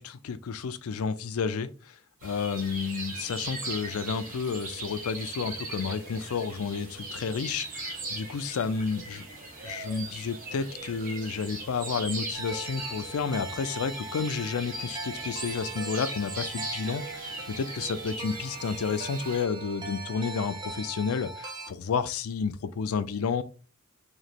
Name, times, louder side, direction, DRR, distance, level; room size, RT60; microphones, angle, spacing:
voice 1, 0.0-9.3 9.6-23.4, left 5 dB, 80° left, 0.4 m, -31 dB
sound 1, 2.2-19.4, right 2 dB, 40° right, 1.2 m, -39 dB
sound 2, 12.3-21.7, right 3 dB, 20° right, 0.6 m, -40 dB
3.1 x 2.9 x 4.0 m
head